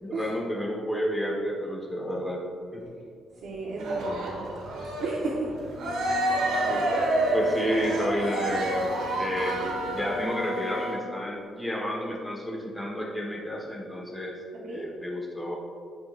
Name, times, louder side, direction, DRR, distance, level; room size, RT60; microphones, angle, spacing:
voice 1, 0.0-2.4 2.7-2.9 6.7-6.9 7.3-8.9 9.2-9.7 9.9-14.3 14.7-15.5, equal, 10° left, -3 dB, 1.4 m, -30 dB
voice 2, 3.4-4.5 5.0-5.6 6.9-7.1 14.6-14.9, right 3 dB, 60° right, -5 dB, 1.1 m, -33 dB
Cheering, 3.8-10.2, right 1 dB, 85° right, 1.9 m, -28 dB
Wind instrument woodwind instrument, 5.7-11.1, left 1 dB, 25° right, 0.8 m, -37 dB
15.0 x 5.9 x 2.5 m, 2.3 s
cardioid pair, 170°, 0 cm